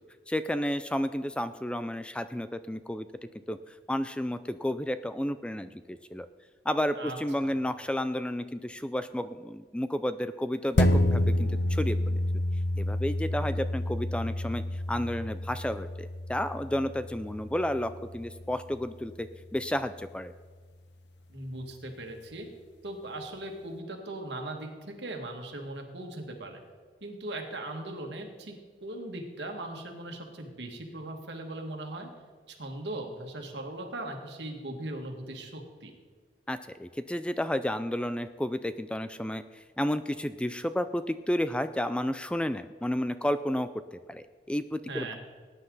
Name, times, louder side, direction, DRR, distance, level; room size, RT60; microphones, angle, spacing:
voice 1, 0.3-3.1 3.5-3.6 3.9-6.3 6.7-12.2 12.8-19.3 19.5-20.3 36.5-45.1, left 1 dB, 5° left, 11 dB, 0.3 m, -31 dB
sound 1, 10.8-19.6 20.0-20.1, left 1 dB, 75° left, 0.9 m, -29 dB
voice 2, 21.3-22.5 22.8-26.6 27.0-28.5 28.8-32.1 32.5-35.9 44.9-45.2, right 1 dB, 75° right, 3 dB, 2.1 m, -39 dB
19.0 x 9.9 x 4.0 m, 1.5 s
head